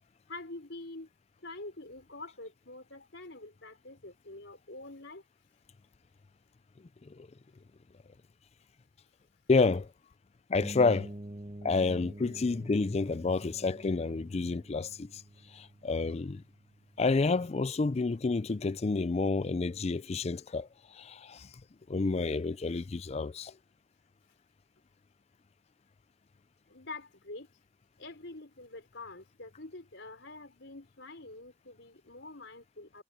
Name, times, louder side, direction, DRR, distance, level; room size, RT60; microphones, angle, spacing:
voice 1, 0.3-1.1 1.4-5.2 26.7-27.5 28.0-33.0, left 2 dB, 60° left, 5.0 m, -46 dB
voice 2, 9.5-9.9 10.5-11.1 11.6-15.2 15.5-16.4 17.0-21.5 21.9-23.5, left 3 dB, 30° left, 0.4 m, -29 dB
sound 1, 10.6-18.4, right 1 dB, 25° right, 1.5 m, -48 dB
head